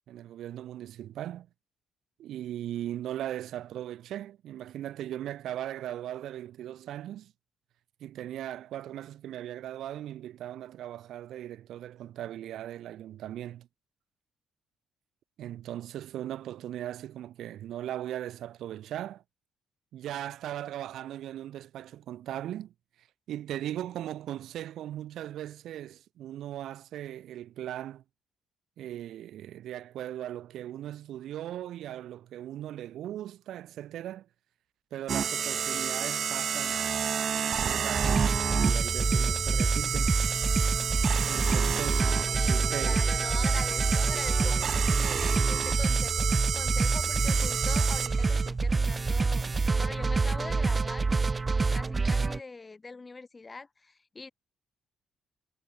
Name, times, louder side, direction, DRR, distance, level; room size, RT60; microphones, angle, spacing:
voice 1, 0.1-1.5 2.2-7.3 8.0-13.7 15.4-19.2 19.9-22.7 23.3-28.0 28.8-34.3 34.9-36.8 37.5-38.3 38.6-40.2 41.3-43.1, right 12 dB, 75° right, 2.2 m, -38 dB
sound 1, 35.1-48.5, right 7 dB, 55° right, 1.7 m, -30 dB
sound 2, 37.9-52.4, right 4 dB, 30° right, 0.5 m, -27 dB
voice 2, 42.3-46.3 46.5-51.1 51.7-54.3, left 3 dB, 25° left, 7.8 m, -43 dB
cardioid pair, 90°, 0 cm